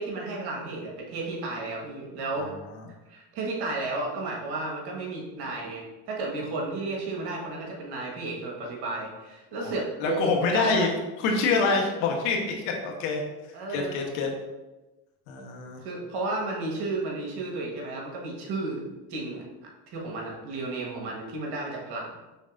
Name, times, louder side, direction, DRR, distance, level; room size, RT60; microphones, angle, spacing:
voice 1, 0.0-2.5 3.1-10.9 13.5-13.9 15.8-19.4 19.9-22.1, right 2 dB, 55° right, -1 dB, 1.4 m, -33 dB
voice 2, 2.4-2.8 9.6-9.7 10.0-10.9 11.2-13.2 13.7-14.3 15.3-15.9, left 4 dB, 70° left, 1 dB, 1.1 m, -26 dB
5.4 x 3.4 x 2.5 m, 1.1 s
hypercardioid pair, 75°, 46 cm